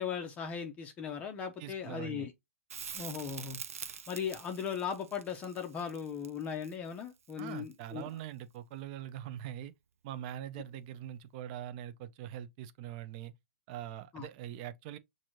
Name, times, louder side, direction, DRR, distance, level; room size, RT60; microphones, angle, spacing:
voice 1, 0.0-2.3 2.9-3.6 4.1-8.1 14.1-14.3, left 7 dB, 15° left, 0.5 m, -38 dB
voice 2, 1.6-2.3 7.4-9.7 10.0-13.3 13.7-15.0, right 11 dB, 35° right, 0.4 m, -43 dB
Crackle, 2.7-7.8 10.6-10.7, right 7 dB, 75° right, 0.6 m, -46 dB
6.0 x 2.6 x 2.9 m
hypercardioid pair, 150°, 8 cm